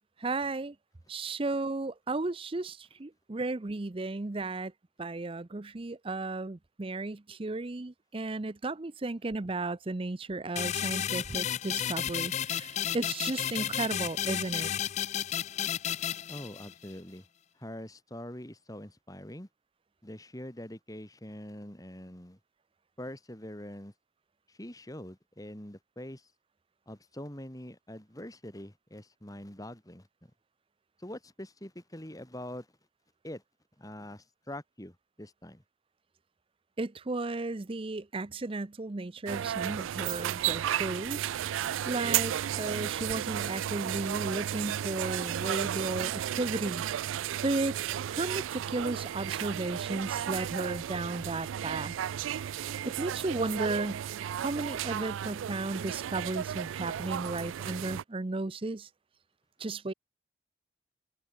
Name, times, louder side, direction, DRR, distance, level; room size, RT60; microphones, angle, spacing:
voice 1, 0.2-0.7 1.1-4.7 5.0-14.7 36.8-41.6 41.9-47.2 47.4-47.8 48.1-51.9 52.8-54.0 54.4-58.9 59.6-59.9, right 2 dB, 30° right, 0.6 m, -34 dB
sound 1, 10.6-16.9, left 10 dB, 35° left, 0.3 m, -32 dB
voice 2, 16.3-17.2 17.6-19.5 20.0-22.4 23.0-23.9 24.5-26.3 26.9-30.1 31.0-32.7 33.2-33.4 33.8-35.6, left 1 dB, 20° left, 3.2 m, -44 dB
sound 2, 39.3-58.0, right 10 dB, 90° right, 0.3 m, -33 dB
head